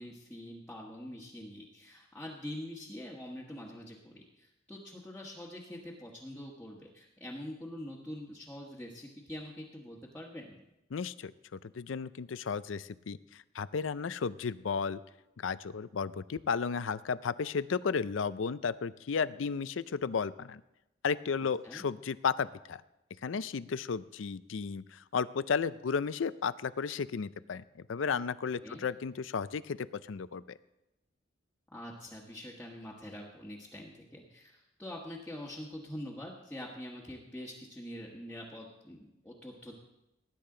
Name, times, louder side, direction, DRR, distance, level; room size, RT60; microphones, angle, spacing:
voice 1, 0.0-10.6 21.6-21.8 28.6-28.8 31.7-39.7, left 1 dB, 10° left, -5 dB, 1.3 m, -45 dB
voice 2, 10.9-15.0 15.4-20.6 21.0-22.8 23.2-30.6, left 5 dB, 90° left, 15 dB, 0.5 m, -34 dB
19.0 x 10.0 x 3.8 m, 0.92 s
head